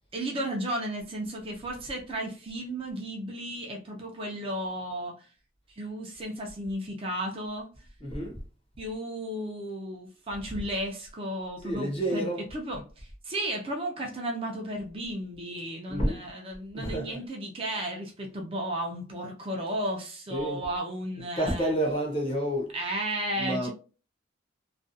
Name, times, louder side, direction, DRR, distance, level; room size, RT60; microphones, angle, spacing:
voice 1, 0.1-5.3 5.7-7.7 8.8-21.7 22.7-23.7, right 1 dB, 25° right, 0.4 m, -34 dB
voice 2, 8.0-8.4 10.5-10.7 11.6-12.5 15.9-16.3 16.7-17.2 20.3-20.7 21.4-22.7 23.4-23.7, right 1 dB, 25° left, 0.6 m, -29 dB
2.4 x 2.2 x 2.6 m
head